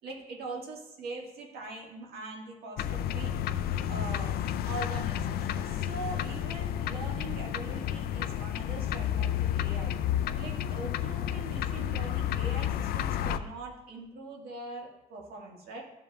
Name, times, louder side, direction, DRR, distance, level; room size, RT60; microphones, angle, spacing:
voice 1, 0.0-3.4 3.7-10.0 10.4-15.8, right 3 dB, 65° right, -1 dB, 1.8 m, -42 dB
sound 1, 2.8-13.4, left 10 dB, 65° left, 0.4 m, -31 dB
14.0 x 5.2 x 2.4 m, 0.96 s
cardioid pair, 110°, 17 cm